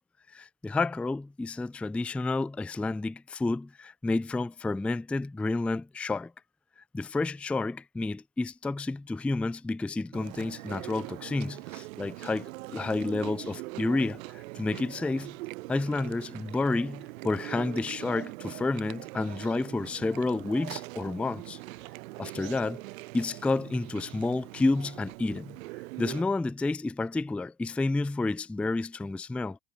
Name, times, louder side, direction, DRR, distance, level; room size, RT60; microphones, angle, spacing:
voice 1, 0.3-6.3 6.9-15.3 15.7-21.6 22.2-22.8 23.1-25.6 26.0-29.6, left 3 dB, 5° left, 0.5 m, -30 dB
Chewing mastication, 10.1-26.2, right 22 dB, 65° right, 4.3 m, -42 dB
supercardioid pair, 135°, 44 cm